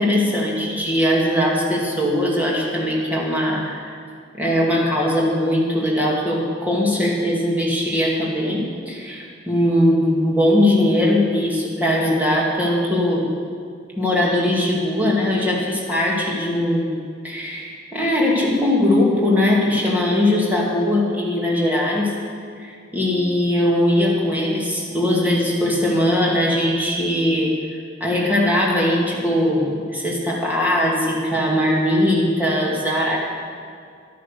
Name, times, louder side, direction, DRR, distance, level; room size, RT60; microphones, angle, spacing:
voice 1, 0.0-3.9 4.3-13.3 14.0-22.2 22.6-27.6 28.0-33.2, left 1 dB, 10° right, -4 dB, 2.2 m, -20 dB
13.0 x 9.2 x 6.7 m, 2.3 s
head